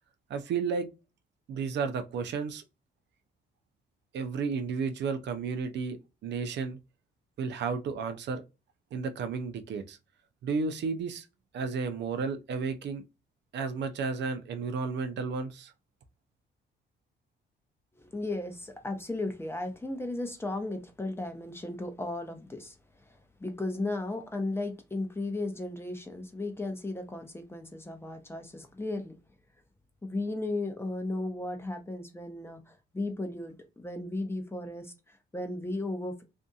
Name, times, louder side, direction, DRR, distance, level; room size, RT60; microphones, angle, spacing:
voice 1, 0.3-0.9 1.5-2.6 4.1-6.0 6.2-6.8 7.4-8.4 8.9-10.0 10.4-11.2 11.5-13.0 13.5-15.7, right 5 dB, 60° right, 0.5 m, -32 dB
voice 2, 18.0-22.8 23.1-29.1 30.0-36.2, left 2 dB, 10° left, 0.6 m, -35 dB
2.6 x 2.6 x 2.3 m
cardioid pair, 90°, 20 cm